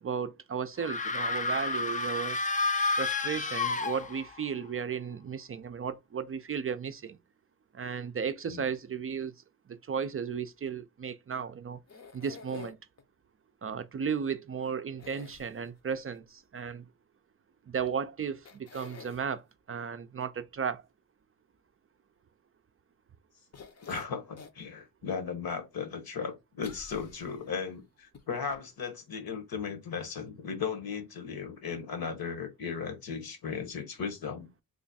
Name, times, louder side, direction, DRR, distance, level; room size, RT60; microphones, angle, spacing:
voice 1, 0.0-2.4 3.0-7.2 7.7-9.3 9.7-11.8 12.1-12.8 13.6-16.9 17.7-20.9, right 6 dB, 35° right, 0.4 m, -35 dB
sound 1, 0.8-4.5, left 3 dB, 20° left, 0.5 m, -30 dB
sound 2, 11.9-13.0 15.0-15.9 17.9-18.0 18.5-19.2 23.5-24.6 25.1-25.2 26.6-27.6 28.1-28.2 28.5-28.6, left 5 dB, 40° left, 0.8 m, -48 dB
voice 2, 23.8-34.5, left 6 dB, 65° left, 1.3 m, -36 dB
3.1 x 2.1 x 4.0 m
supercardioid pair, 50°, 39 cm